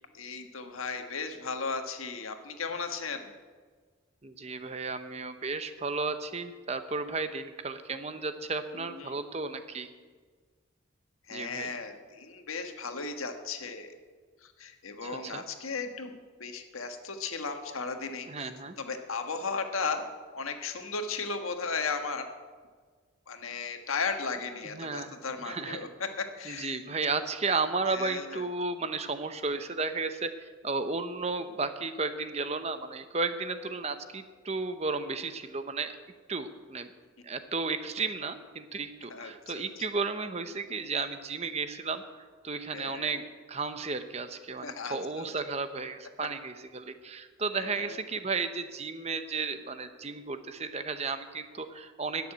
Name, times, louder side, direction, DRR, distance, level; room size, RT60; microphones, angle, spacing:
voice 1, 0.1-3.3 8.7-9.2 11.3-13.9 14.4-18.5 18.8-20.0 20.3-22.3 23.3-26.8 27.9-28.5 39.1-39.9 42.7-43.2 44.6-45.5 47.5-48.0, left 4 dB, 85° left, 6 dB, 1.5 m, -36 dB
voice 2, 4.2-9.9 11.3-11.7 15.0-15.4 18.3-18.8 24.7-25.1 25.4-25.8 26.5-35.9 36.3-36.9 37.2-42.0 42.4-52.3, right 4 dB, 30° right, 10 dB, 0.7 m, -33 dB
14.0 x 6.9 x 10.0 m, 1.5 s
head